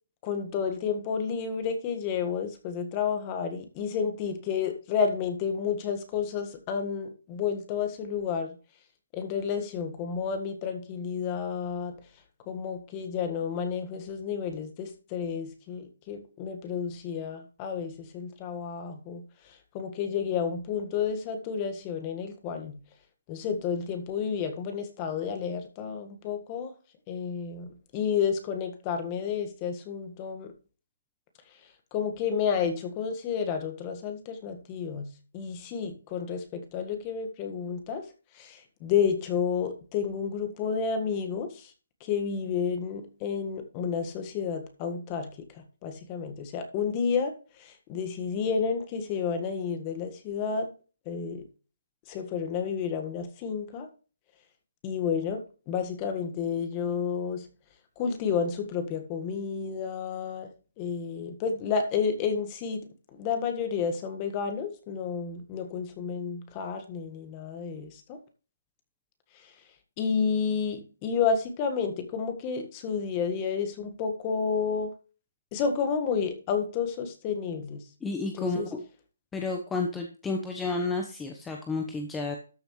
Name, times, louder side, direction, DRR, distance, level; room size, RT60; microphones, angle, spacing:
voice 1, 0.2-8.6 9.1-11.9 12.5-19.2 19.7-22.8 23.3-26.7 27.1-30.5 31.9-35.1 35.3-38.0 38.3-41.7 42.0-45.3 45.5-47.3 47.6-50.7 51.0-51.4 52.1-53.9 54.8-57.5 58.0-60.5 60.8-62.8 63.1-68.2 70.0-74.9 75.5-77.8 78.4-78.7, left 6 dB, 25° left, 7 dB, 1.6 m, -31 dB
voice 2, 78.0-78.8 79.3-82.4, left 3 dB, 10° left, 3 dB, 1.0 m, -31 dB
13.0 x 7.0 x 3.2 m, 0.37 s
hypercardioid pair, 150°, 0 cm